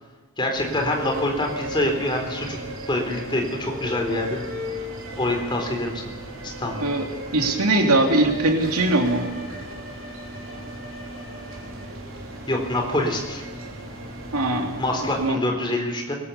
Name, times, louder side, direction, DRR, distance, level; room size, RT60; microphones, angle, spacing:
voice 1, 0.4-2.6 2.9-4.4 5.2-6.1 6.4-6.9 12.5-13.5 14.8-16.2, left 1 dB, 20° left, 2 dB, 3.9 m, -25 dB
sound 1, 0.5-15.3, equal, 60° right, 4.6 m, -35 dB
voice 2, 7.3-9.2 14.3-15.4, right 2 dB, 90° right, 2 dB, 3.4 m, -21 dB
22.0 x 20.0 x 7.1 m, 1.3 s
head